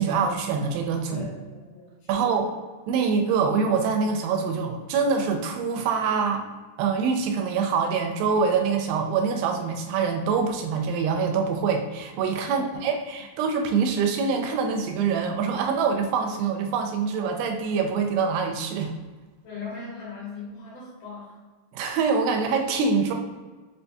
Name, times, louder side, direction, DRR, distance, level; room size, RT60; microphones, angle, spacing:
voice 1, 0.0-1.2 2.1-2.5 2.9-6.4 6.8-18.9 21.7-23.1, right 5 dB, 90° right, 4 dB, 2.3 m, -25 dB
voice 2, 1.1-2.3 12.4-12.9 19.4-21.4, left 4 dB, 90° left, -7 dB, 3.5 m, -39 dB
6.5 x 2.6 x 2.2 m, 1.3 s
omnidirectional pair, 4.1 m